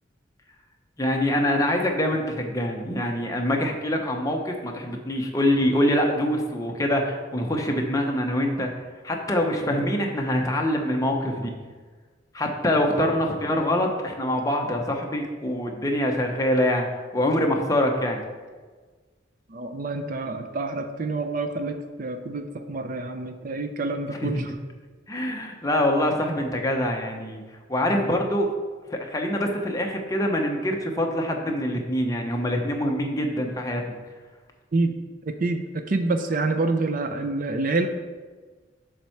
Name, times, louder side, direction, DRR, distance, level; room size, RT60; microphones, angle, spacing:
voice 1, 1.0-8.7 9.0-11.5 12.3-16.9 17.1-18.2 24.1-24.5 25.1-27.4 27.7-28.5 28.9-34.0, left 1 dB, 20° left, 1 dB, 0.8 m, -25 dB
voice 2, 19.5-24.4 34.7-35.0 35.3-37.9, right 3 dB, 45° right, 7 dB, 0.5 m, -27 dB
7.3 x 4.4 x 5.8 m, 1.4 s
head